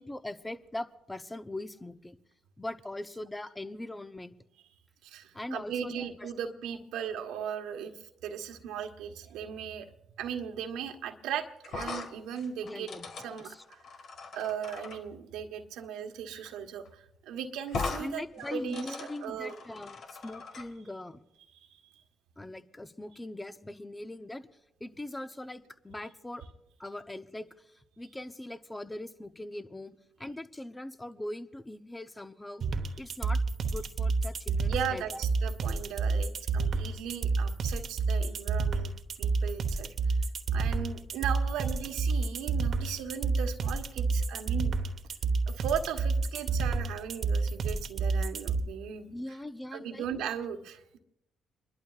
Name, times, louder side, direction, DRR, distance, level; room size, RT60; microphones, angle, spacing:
voice 1, 0.0-2.2 2.6-4.3 5.3-6.3 12.6-13.6 18.0-21.2 22.4-24.5 24.8-26.4 26.8-29.9 30.2-32.6 33.0-33.4 33.7-35.2 49.1-50.1, left 1 dB, 15° left, 11 dB, 0.8 m, -41 dB
voice 2, 5.0-7.9 8.2-9.9 10.2-12.9 13.2-13.8 14.3-19.5 21.5-22.0 34.7-38.9 39.2-40.1 40.5-44.8 45.5-49.1 49.7-51.0, right 8 dB, 80° right, 5 dB, 1.3 m, -37 dB
sound 1, 11.6-15.0 16.4-16.6 16.9-17.0 17.7-18.0 18.4-20.7, left 4 dB, 60° left, 1.7 m, -39 dB
sound 2, 32.6-48.6, right 4 dB, 60° right, 1.0 m, -29 dB
29.5 x 11.5 x 2.4 m, 0.80 s
supercardioid pair, 65°, 0 cm